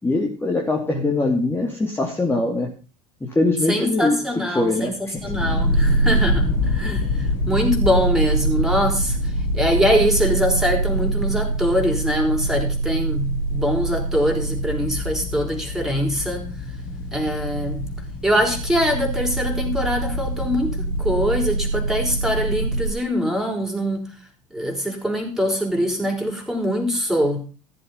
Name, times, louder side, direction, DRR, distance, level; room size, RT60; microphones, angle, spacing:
voice 1, 0.0-2.7 3.2-4.2 4.5-5.3, left 2 dB, 15° left, 0 dB, 2.7 m, -22 dB
voice 2, 3.7-16.4 17.1-17.9 18.2-24.0 24.5-27.4, equal, 5° right, 2 dB, 5.1 m, -23 dB
sound 1, 5.2-22.9, right 1 dB, 55° left, 2.8 m, -24 dB
14.5 x 7.8 x 5.6 m, 0.35 s
hypercardioid pair, 70°, 17 cm